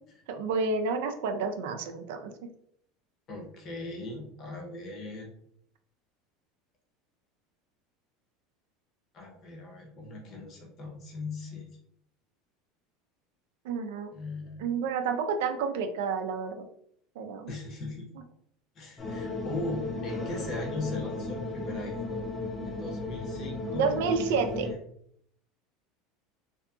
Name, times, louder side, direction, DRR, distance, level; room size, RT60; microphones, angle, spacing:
voice 1, 0.3-2.5 13.6-14.1 14.6-16.7 17.2-17.5 23.7-24.7, right 5 dB, 80° right, 6 dB, 0.4 m, -30 dB
voice 2, 3.3-5.3 9.1-11.7 14.1-14.7 17.5-18.1 18.7-22.2 22.6-24.8, left 2 dB, 35° left, 1 dB, 0.8 m, -39 dB
sound 1, 19.0-24.7, left 2 dB, 15° left, 0.4 m, -35 dB
2.7 x 2.5 x 2.3 m, 0.68 s
supercardioid pair, 160°, 0 cm